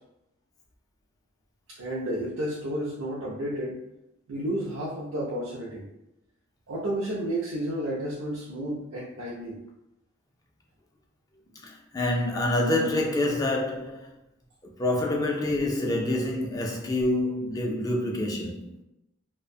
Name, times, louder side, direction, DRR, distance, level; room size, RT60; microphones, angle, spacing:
voice 1, 1.7-3.8 4.3-5.9 6.7-9.6, right 1 dB, 70° right, 0.5 m, -31 dB
voice 2, 11.5-14.1 14.6-18.7, left 1 dB, 20° left, 0.3 m, -27 dB
2.4 x 2.1 x 2.6 m
head